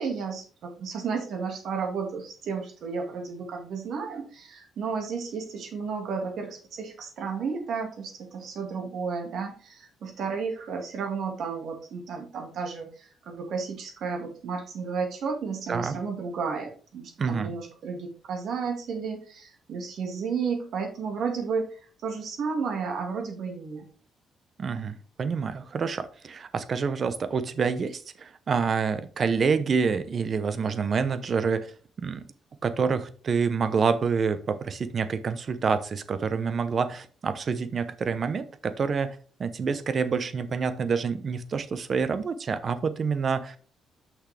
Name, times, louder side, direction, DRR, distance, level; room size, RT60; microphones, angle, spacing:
voice 1, 0.0-23.9, right 5 dB, 70° right, 3 dB, 1.9 m, -32 dB
voice 2, 17.2-17.5 24.6-31.7 32.0-32.2 32.6-43.6, right 5 dB, 45° right, 12 dB, 0.8 m, -27 dB
6.2 x 6.1 x 3.4 m, 0.40 s
cardioid pair, 90°, 0 cm